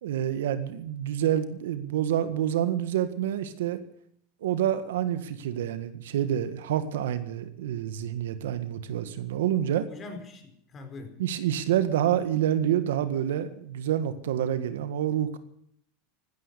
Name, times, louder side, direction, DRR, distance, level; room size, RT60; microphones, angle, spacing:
voice 1, 0.0-3.8 4.4-9.9 11.2-15.4, right 10 dB, 85° right, 11 dB, 1.7 m, -27 dB
voice 2, 9.9-11.2, left 3 dB, 30° left, 5 dB, 4.6 m, -42 dB
15.5 x 13.0 x 6.9 m, 0.68 s
supercardioid pair, 120°, 0 cm